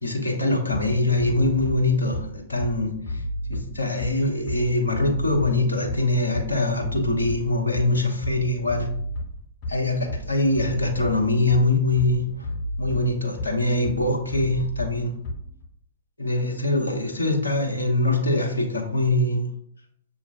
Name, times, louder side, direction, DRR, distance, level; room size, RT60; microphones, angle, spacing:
voice 1, 0.0-3.2 3.5-8.9 9.7-12.5 12.8-15.1 16.2-19.5, left 2 dB, 80° left, 0 dB, 1.2 m, -23 dB
Bass drum, 0.7-15.7, equal, 40° left, 1.9 m, -32 dB
7.1 x 2.8 x 2.6 m, 0.68 s
figure-of-eight pair, 110°, 0 cm